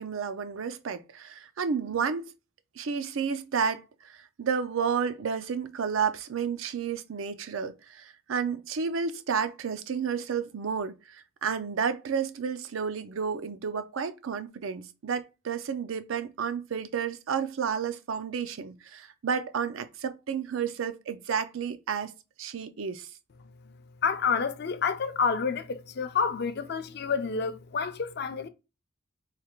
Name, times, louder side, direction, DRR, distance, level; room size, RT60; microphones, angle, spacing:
voice 1, 0.0-2.3 2.8-22.1 22.4-23.1, right 6 dB, 90° right, 0.5 m, -31 dB
voice 2, 24.0-28.5, left 5 dB, 55° left, 0.4 m, -29 dB
3.2 x 2.4 x 4.4 m
head